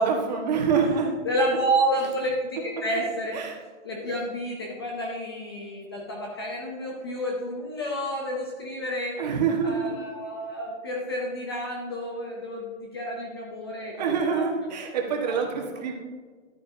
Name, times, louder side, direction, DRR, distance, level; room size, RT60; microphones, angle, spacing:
voice 1, 0.0-1.1 3.3-3.6 9.2-9.9 14.0-15.9, right 5 dB, 35° right, 1 dB, 1.5 m, -25 dB
voice 2, 1.2-3.4 3.8-9.2 9.6-14.4 15.3-15.4, right 1 dB, 20° left, -1 dB, 0.6 m, -30 dB
12.0 x 9.1 x 2.8 m, 1.5 s
hypercardioid pair, 170°, 38 cm